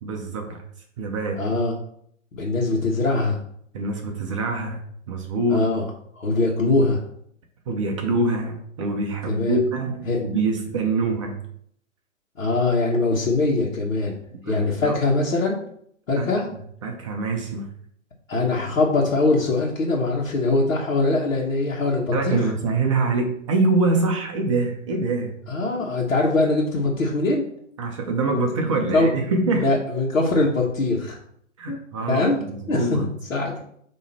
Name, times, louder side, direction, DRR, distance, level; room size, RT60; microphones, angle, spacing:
voice 1, 0.0-0.6 1.0-1.5 3.7-4.8 5.1-5.7 7.7-11.5 14.3-15.0 16.2-16.3 16.8-17.7 22.1-25.4 27.8-29.8 31.6-33.1, right 3 dB, 25° right, 3 dB, 0.6 m, -25 dB
voice 2, 1.4-1.7 2.3-3.4 5.5-5.8 6.2-7.0 9.3-9.6 10.1-10.2 12.4-14.2 14.5-15.6 16.1-16.5 18.3-22.4 25.5-27.4 28.9-29.1 29.5-31.2 31.7-31.8 32.1-32.4 32.7-33.6, left 2 dB, 65° left, -5 dB, 1.5 m, -22 dB
8.5 x 3.1 x 4.3 m, 0.67 s
figure-of-eight pair, 135°, 40 cm